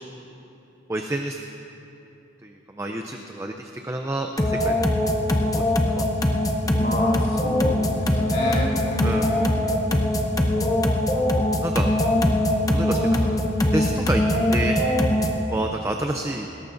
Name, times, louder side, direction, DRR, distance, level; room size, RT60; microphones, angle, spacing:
voice 1, 0.9-1.4 2.4-4.8 5.5-5.6 5.9-6.0 6.6-6.8 9.0-9.3 11.4-11.9 12.7-13.4 13.7-14.2 14.5-14.8 15.5-16.5, right 1 dB, 15° right, 3 dB, 0.5 m, -29 dB
sound 1, 4.4-15.5, left 1 dB, 20° left, 0.7 m, -22 dB
voice 2, 6.7-9.8, equal, 45° left, -4 dB, 2.5 m, -30 dB
20.5 x 17.5 x 2.6 m, 2.8 s
head